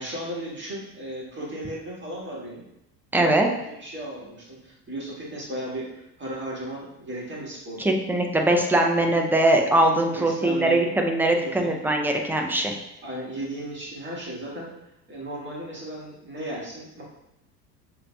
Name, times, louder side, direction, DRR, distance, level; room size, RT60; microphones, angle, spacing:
voice 1, 0.0-2.6 3.2-7.9 10.1-10.8 11.6-11.8 13.0-14.7 15.1-17.0, right 1 dB, 25° right, -5 dB, 1.5 m, -35 dB
voice 2, 3.1-3.5 7.8-12.7, right 1 dB, 5° right, 2 dB, 0.4 m, -21 dB
6.5 x 2.9 x 2.2 m, 0.87 s
hypercardioid pair, 75°, 47 cm